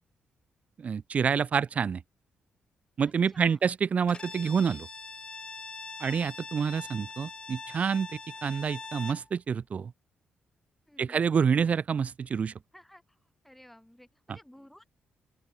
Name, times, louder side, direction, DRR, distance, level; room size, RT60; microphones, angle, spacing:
voice 1, 0.8-2.0 3.0-4.9 6.0-8.1 8.4-9.9 11.0-12.5 14.3-14.4, right 6 dB, 45° right, 1.7 m, -27 dB
voice 2, 3.0-3.6 6.0-6.2 10.9-11.2 12.7-13.2 13.4-14.9, left 1 dB, 5° left, 6.7 m, -54 dB
Bowed string instrument, 4.1-9.3, left 4 dB, 25° left, 1.8 m, -43 dB
open air
cardioid pair, 120°, 3 cm